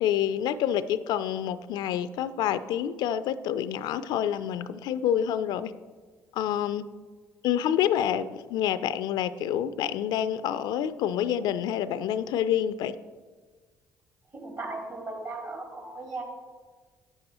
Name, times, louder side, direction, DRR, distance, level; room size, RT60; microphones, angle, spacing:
voice 1, 0.0-5.7 6.4-6.8 7.4-12.9, left 10 dB, 70° left, 14 dB, 0.4 m, -27 dB
voice 2, 14.3-16.2, right 2 dB, 45° right, 1 dB, 2.7 m, -37 dB
8.6 x 6.9 x 4.3 m, 1.4 s
hypercardioid pair, 55°, 7 cm